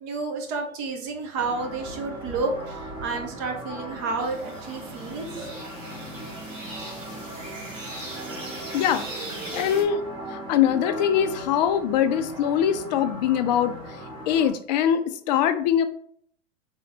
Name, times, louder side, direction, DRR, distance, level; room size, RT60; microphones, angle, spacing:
voice 1, 0.0-5.4, right 3 dB, 35° right, 3 dB, 0.7 m, -30 dB
sound 1, 1.4-14.5, equal, 15° right, 1.1 m, -38 dB
sound 2, 4.2-9.8, right 2 dB, 90° right, 1.4 m, -39 dB
voice 2, 8.7-9.1 9.5-10.0 10.3-13.8 14.3-15.8, left 9 dB, 35° left, 10 dB, 0.4 m, -22 dB
3.8 x 3.4 x 2.9 m, 0.63 s
hypercardioid pair, 110°, 37 cm